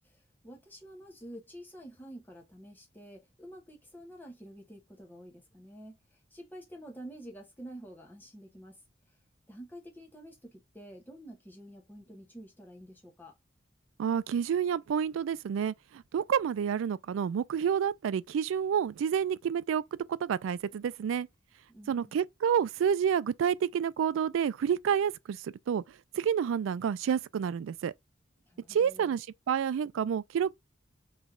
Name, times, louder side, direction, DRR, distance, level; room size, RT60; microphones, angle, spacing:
voice 1, 0.4-8.8 9.5-13.3 21.7-22.2 28.5-29.2, right 1 dB, 10° left, 1.0 m, -49 dB
voice 2, 14.0-19.8 20.2-21.3 21.9-25.8 26.1-27.9 28.7-30.5, right 8 dB, 85° right, 0.3 m, -29 dB
3.3 x 3.1 x 3.6 m
head